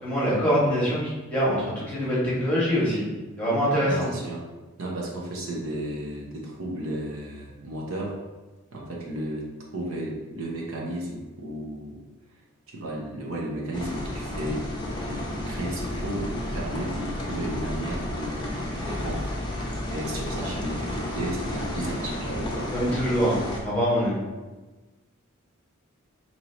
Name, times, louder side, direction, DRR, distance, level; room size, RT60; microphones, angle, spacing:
voice 1, 0.0-3.0 3.4-4.1 22.7-24.2, equal, 5° left, -8 dB, 1.2 m, -24 dB
voice 2, 3.9-4.4 4.8-8.2 8.7-12.0 12.7-14.6 15.1-18.4 18.7-19.3 19.9-22.7, right 1 dB, 65° right, -2 dB, 0.7 m, -33 dB
sound 1, 13.7-23.6, left 1 dB, 20° left, 0.6 m, -32 dB
3.0 x 2.7 x 4.1 m, 1.2 s
head